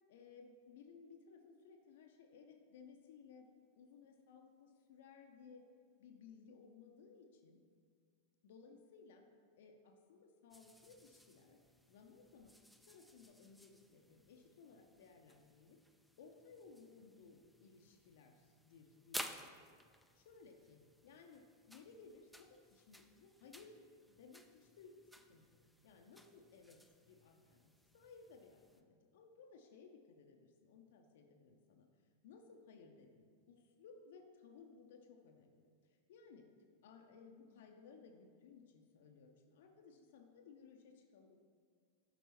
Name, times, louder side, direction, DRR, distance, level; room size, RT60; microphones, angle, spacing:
voice 1, 0.1-3.5 3.7-5.6 6.0-7.6 8.4-9.2 9.6-11.6 11.9-15.8 16.2-19.6 19.9-23.8 24.1-25.0 25.3-26.8 27.1-31.9 32.2-36.4 36.8-41.4, left 5 dB, 55° left, 3 dB, 0.6 m, -60 dB
sound 1, 10.5-28.8, equal, ahead, 0.4 m, -56 dB
12.5 x 5.3 x 3.0 m, 2.1 s
figure-of-eight pair, 90°, 0 cm